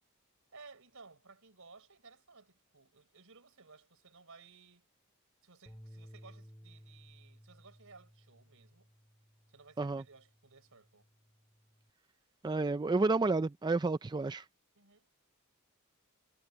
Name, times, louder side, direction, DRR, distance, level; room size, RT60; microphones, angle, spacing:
voice 1, 0.5-4.9 5.4-8.9 9.5-11.0 14.7-15.1, right 4 dB, 65° right, 5.2 m, -58 dB
sound 1, 5.7-11.9, equal, 10° left, 3.5 m, -58 dB
voice 2, 12.4-14.4, right 3 dB, 20° right, 0.4 m, -30 dB
head